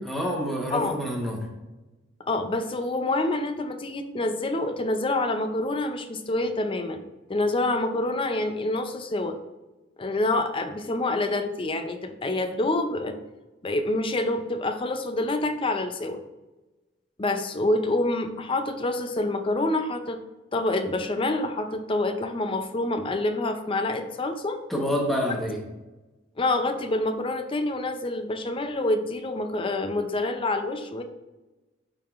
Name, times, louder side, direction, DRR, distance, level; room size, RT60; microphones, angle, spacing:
voice 1, 0.0-1.5 24.7-25.6, equal, ahead, -2 dB, 1.1 m, -27 dB
voice 2, 2.3-7.0 7.3-9.4 10.0-13.2 13.6-16.2 17.2-20.2 20.5-24.6 26.4-31.0, left 2 dB, 25° left, 6 dB, 0.5 m, -27 dB
10.5 x 3.7 x 2.5 m, 1.1 s
head